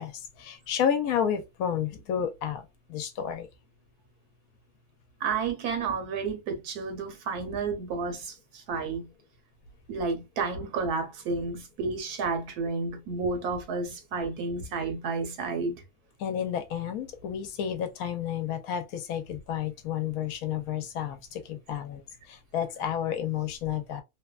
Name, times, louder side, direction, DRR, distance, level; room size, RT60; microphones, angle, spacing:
voice 1, 0.0-3.5 16.2-22.0 22.3-24.0, left 9 dB, 75° left, 1.1 m, -31 dB
voice 2, 5.2-9.1 9.9-15.8, right 4 dB, 85° right, 1.4 m, -31 dB
3.0 x 2.2 x 2.3 m
omnidirectional pair, 1.6 m